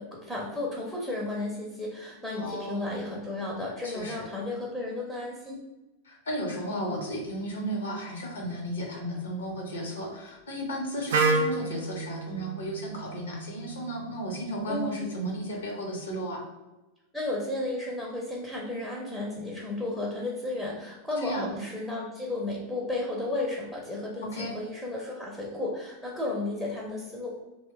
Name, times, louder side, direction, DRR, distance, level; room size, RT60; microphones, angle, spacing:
voice 1, 0.0-5.6 14.7-15.0 17.1-27.4, left 2 dB, ahead, -4 dB, 0.6 m, -33 dB
voice 2, 2.4-2.9 3.8-4.3 6.0-16.5 21.2-21.6 24.2-24.6, equal, 65° left, 1 dB, 0.7 m, -34 dB
Wind instrument woodwind instrument, 11.1-15.0, right 3 dB, 60° right, 0.3 m, -31 dB
2.8 x 2.1 x 3.4 m, 1.1 s
figure-of-eight pair, 90°, 0 cm